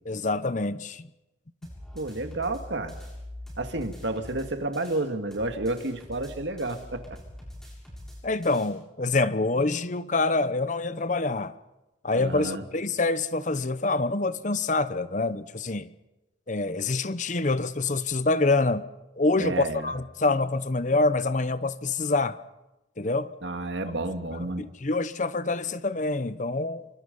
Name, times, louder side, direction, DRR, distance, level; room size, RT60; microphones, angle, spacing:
voice 1, 0.0-1.1 8.2-11.5 12.0-15.9 16.5-18.8 19.2-22.4 23.0-23.3 23.8-23.9 24.6-26.9, left 3 dB, 40° left, 14 dB, 0.8 m, -26 dB
sound 1, 1.6-5.0 5.3-8.7, left 1 dB, 5° left, 7.7 m, -44 dB
voice 2, 1.9-3.0 3.6-7.2 12.1-12.6 19.4-20.0 23.4-24.7, right 2 dB, 70° right, 6 dB, 2.3 m, -31 dB
27.5 x 25.0 x 5.4 m, 0.99 s
head